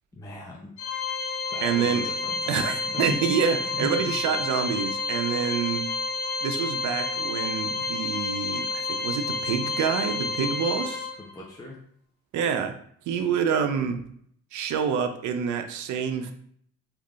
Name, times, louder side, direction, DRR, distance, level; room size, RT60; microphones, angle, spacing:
voice 1, 0.1-0.7 1.5-3.2 3.7-4.4 11.2-11.8 13.1-13.4, left 3 dB, 10° left, -3 dB, 0.5 m, -38 dB
Organ, 0.8-11.4, left 4 dB, 70° left, 0.9 m, -30 dB
voice 2, 1.6-2.0 2.5-5.8 6.4-11.1 12.3-12.8 13.1-14.0 14.5-16.3, right 7 dB, 75° right, 7 dB, 0.5 m, -27 dB
3.4 x 2.3 x 2.3 m, 0.65 s
cardioid pair, 90°, 30 cm